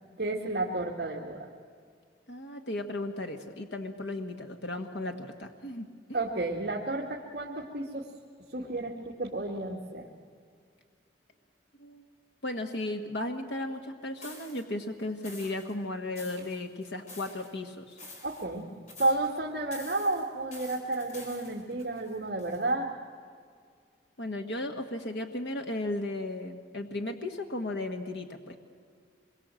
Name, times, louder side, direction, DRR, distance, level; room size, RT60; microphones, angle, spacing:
voice 1, 0.2-1.5 6.1-8.1 8.5-10.1 18.2-18.7 19.0-22.9, right 2 dB, 60° right, -2 dB, 2.1 m, -31 dB
voice 2, 2.3-6.2 11.8-12.0 12.4-18.0 24.2-28.6, left 2 dB, 75° left, 4 dB, 1.5 m, -35 dB
sound 1, 14.2-14.6 15.2-15.7 16.2-17.5 17.9-18.6 18.9-19.4 19.7-22.7, left 2 dB, 40° left, 4.7 m, -48 dB
26.0 x 23.0 x 7.7 m, 2.1 s
head